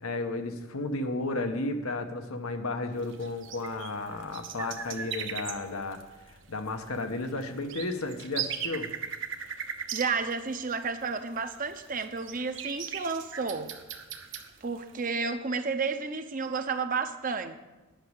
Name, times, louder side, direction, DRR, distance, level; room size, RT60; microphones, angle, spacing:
voice 1, 0.0-6.0 6.3-8.9, left 2 dB, 90° left, 6 dB, 1.2 m, -33 dB
sound 1, 2.9-15.0, right 7 dB, 60° right, 1.1 m, -39 dB
voice 2, 9.9-13.7 14.6-17.6, right 4 dB, 40° right, 8 dB, 0.7 m, -31 dB
10.5 x 6.3 x 8.2 m, 1.1 s
head